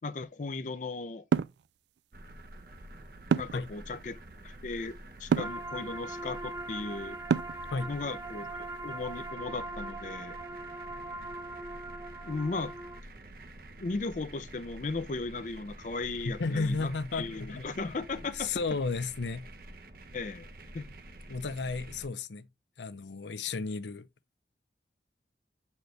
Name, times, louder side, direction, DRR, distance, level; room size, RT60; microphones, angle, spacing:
voice 1, 0.0-1.2 3.3-4.2 4.4-7.2 7.9-10.4 12.2-12.7 13.8-18.5 20.1-20.5 20.7-21.0, left 3 dB, 45° left, 0.5 m, -36 dB
sound 1, 1.3-1.6 3.3-3.7 5.3-5.6 7.3-7.7, right 6 dB, 80° right, 0.3 m, -26 dB
sound 2, 2.1-22.1, right 1 dB, 55° right, 0.8 m, -49 dB
sound 3, 5.4-13.0, right 2 dB, 15° right, 0.6 m, -41 dB
voice 2, 16.3-17.7 18.3-19.5 21.3-22.4 22.8-24.1, left 4 dB, 85° left, 0.6 m, -33 dB
7.9 x 4.2 x 3.2 m
head